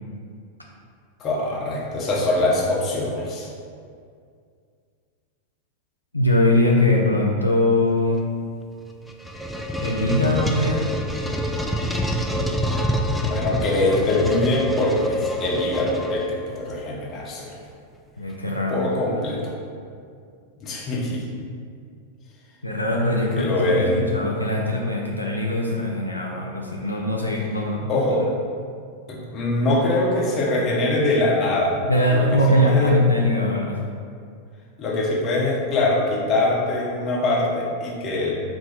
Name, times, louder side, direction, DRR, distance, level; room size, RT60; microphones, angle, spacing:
voice 1, 1.2-3.5 13.2-17.6 18.7-19.5 20.6-21.2 23.3-24.2 27.9-28.2 29.1-31.8 32.1-32.2 32.6-32.9 34.8-38.3, left 2 dB, 30° left, -4 dB, 0.9 m, -23 dB
voice 2, 6.1-8.3 9.8-11.0 18.2-18.9 22.6-27.9 31.8-33.9, left 1 dB, 85° left, -2 dB, 0.3 m, -21 dB
sound 1, 8.8-16.6, equal, ahead, 0.3 m, -26 dB
4.4 x 2.1 x 4.2 m, 2.3 s
figure-of-eight pair, 90°, 0 cm